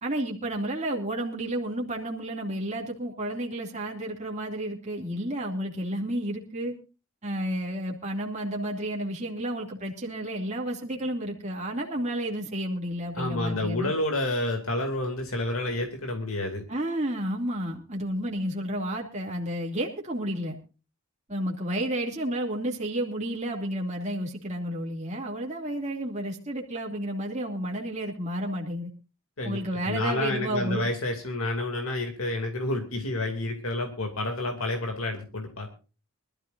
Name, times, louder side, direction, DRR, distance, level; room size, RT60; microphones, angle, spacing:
voice 1, 0.0-6.7 7.2-13.9 16.7-20.6 21.3-28.9 29.4-30.9, right 1 dB, 30° right, -1 dB, 2.6 m, -31 dB
voice 2, 13.1-16.6 29.4-29.6 29.8-35.7, left 1 dB, 70° left, 3 dB, 2.7 m, -29 dB
24.5 x 13.0 x 2.6 m, 0.33 s
head